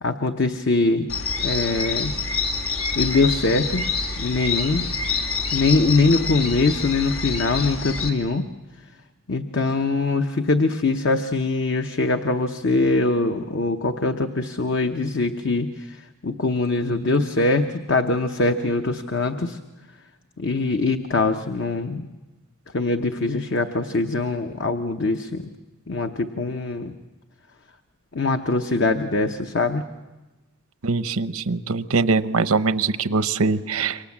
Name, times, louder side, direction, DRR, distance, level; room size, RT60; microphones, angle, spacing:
voice 1, 0.0-1.1 1.4-2.1 3.0-3.9 4.2-4.9 5.5-8.5 9.3-15.7 16.2-19.6 20.4-22.1 22.7-25.4 25.9-26.9 28.1-29.9, left 3 dB, 55° left, 6 dB, 0.9 m, -22 dB
sound 1, 1.1-8.1, left 4 dB, 85° left, 3.0 m, -27 dB
voice 2, 30.8-34.0, right 4 dB, 85° right, 12 dB, 0.9 m, -22 dB
28.0 x 24.0 x 7.3 m, 1.2 s
head